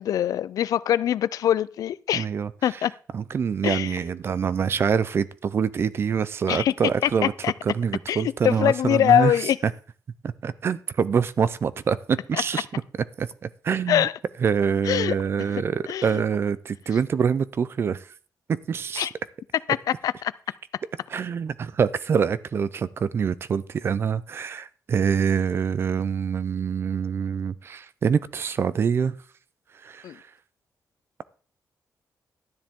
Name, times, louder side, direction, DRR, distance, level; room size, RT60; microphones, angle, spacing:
voice 1, 0.0-2.3 2.6-2.9 3.6-4.0 6.5-6.7 7.0-7.1 7.4-7.5 8.1-9.6 12.3-12.4 13.9-14.1 14.8-15.1 15.5-16.2 19.0-19.1 19.7-19.8 20.0-20.3 30.0-30.2, left 11 dB, 75° left, 0.4 m, -23 dB
voice 2, 2.1-2.5 3.1-7.3 7.7-9.3 10.2-12.7 13.2-14.1 14.4-18.1 18.5-19.1 21.1-29.1 29.8-30.2, right 6 dB, 40° right, 0.5 m, -25 dB
12.5 x 10.0 x 3.7 m
wide cardioid pair, 160°, 6 cm